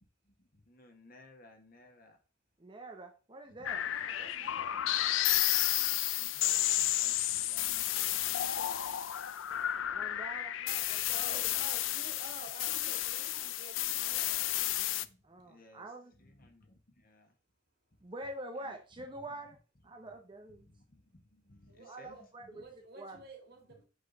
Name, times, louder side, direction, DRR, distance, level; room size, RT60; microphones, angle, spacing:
voice 1, 0.2-2.2 3.4-4.9 5.8-9.1 11.1-11.3 14.6-17.3 18.5-19.5 19.8-20.1 20.5-22.6 23.1-23.2, left 1 dB, 50° left, 1.4 m, -60 dB
voice 2, 2.6-3.8 9.9-10.5 10.9-11.5 15.2-16.1 18.0-19.6 19.8-20.7 21.9-22.6 23.0-23.2, right 1 dB, 25° right, 0.7 m, -45 dB
sound 1, 3.6-15.0, left 13 dB, 85° left, 0.4 m, -32 dB
voice 3, 3.8-4.8 5.9-6.3 10.6-14.6 21.7-22.2 22.5-23.8, right 2 dB, 55° right, 2.6 m, -51 dB
8.3 x 3.3 x 3.9 m
head